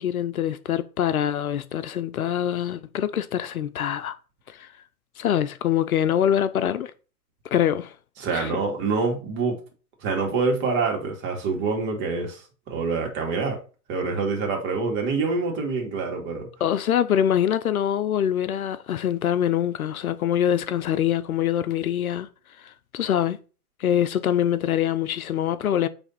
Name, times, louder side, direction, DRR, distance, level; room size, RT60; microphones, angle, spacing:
voice 1, 0.0-4.2 4.5-4.7 5.2-6.9 7.5-7.9 8.3-8.5 16.6-22.3 22.6-23.4 23.8-25.9, left 10 dB, 65° left, 0.8 m, -24 dB
voice 2, 8.2-9.6 10.0-13.6 13.9-16.5, right 4 dB, 25° right, 2.2 m, -26 dB
9.0 x 3.4 x 4.2 m
hypercardioid pair, 130°, 46 cm